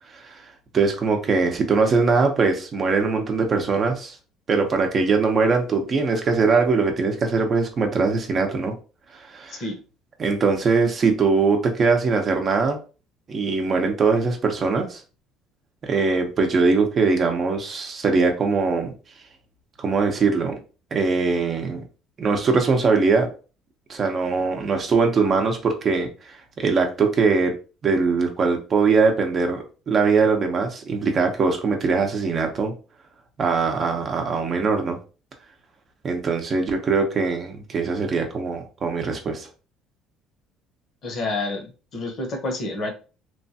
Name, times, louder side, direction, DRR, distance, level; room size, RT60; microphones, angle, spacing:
voice 1, 0.7-4.1 4.5-8.7 9.1-9.6 10.2-12.8 13.3-15.0 15.8-18.9 19.8-20.6 20.9-21.8 22.2-23.3 23.9-32.7 33.4-35.0 36.0-39.5, right 4 dB, 40° right, 4 dB, 0.7 m, -21 dB
voice 2, 41.0-42.9, left 2 dB, 50° left, 3 dB, 0.9 m, -29 dB
3.0 x 2.2 x 2.7 m, 0.34 s
cardioid pair, 105°, 0 cm